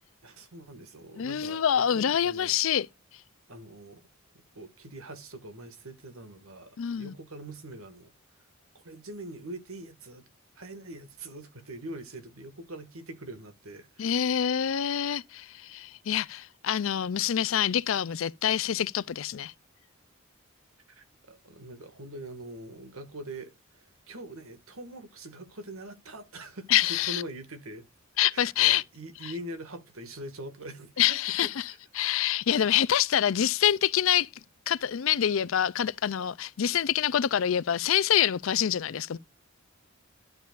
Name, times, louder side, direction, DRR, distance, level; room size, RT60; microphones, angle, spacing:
voice 1, 0.2-2.5 3.5-4.0 4.3-8.1 8.7-10.3 10.6-14.3 20.9-27.9 28.3-31.8, right 1 dB, 80° right, 1.9 m, -43 dB
voice 2, 1.2-2.9 6.8-7.1 14.0-19.5 26.7-27.2 28.2-28.8 29.2-29.3 31.0-34.3 34.7-39.2, left 10 dB, 65° left, 0.4 m, -26 dB
11.5 x 6.9 x 2.5 m
head